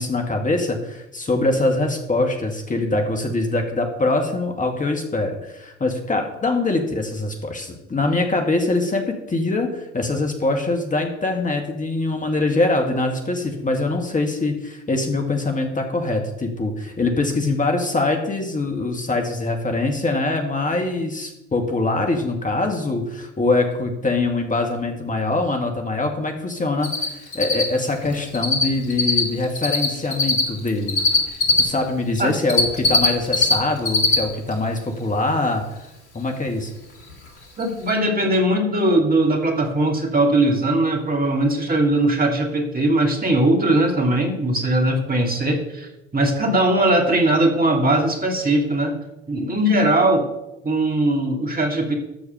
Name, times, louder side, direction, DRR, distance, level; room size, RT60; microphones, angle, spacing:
voice 1, 0.0-31.0 31.3-35.8 36.1-36.7, left 2 dB, 25° left, 3 dB, 1.9 m, -23 dB
Cricket, 26.8-27.1 27.3-28.6 28.9-31.6 32.1-33.5 33.8-34.2 34.5-34.6 37.1-37.2 37.6-37.7 37.9-38.0, left 3 dB, 75° left, 2.3 m, -18 dB
voice 2, 37.6-45.9 46.1-48.9 49.3-50.3 50.6-51.9, right 1 dB, 25° right, 2 dB, 2.9 m, -19 dB
13.0 x 4.6 x 6.9 m, 0.91 s
hypercardioid pair, 60°, 34 cm